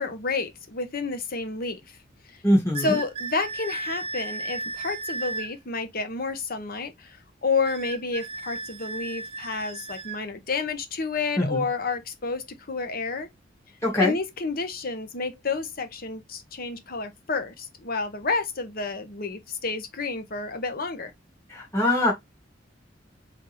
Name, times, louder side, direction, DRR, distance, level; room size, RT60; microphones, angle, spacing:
voice 1, 0.0-2.0 2.3-2.4 2.8-13.3 14.0-21.1, left 4 dB, 50° left, 1.0 m, -30 dB
voice 2, 2.4-3.0 11.4-11.6 13.8-14.1 21.5-22.1, left 1 dB, 15° left, 1.8 m, -22 dB
sound 1, 2.7-5.5 7.7-10.2, right 3 dB, 30° right, 0.5 m, -35 dB
3.9 x 3.5 x 3.2 m
head